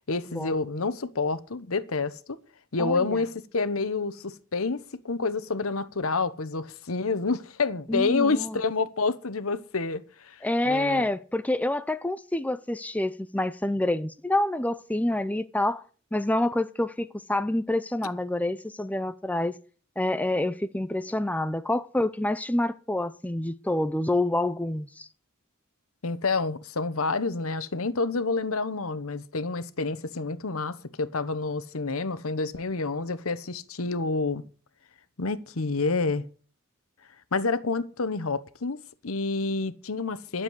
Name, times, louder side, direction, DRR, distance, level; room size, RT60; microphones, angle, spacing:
voice 1, 0.1-2.4 2.7-10.4 10.6-11.0 26.0-34.4 35.2-36.2 37.3-40.4, left 3 dB, 75° left, 1.1 m, -28 dB
voice 2, 2.8-3.2 7.9-8.6 10.4-15.8 16.1-19.6 20.0-25.1, left 1 dB, 5° left, 0.5 m, -27 dB
12.0 x 7.4 x 8.2 m
head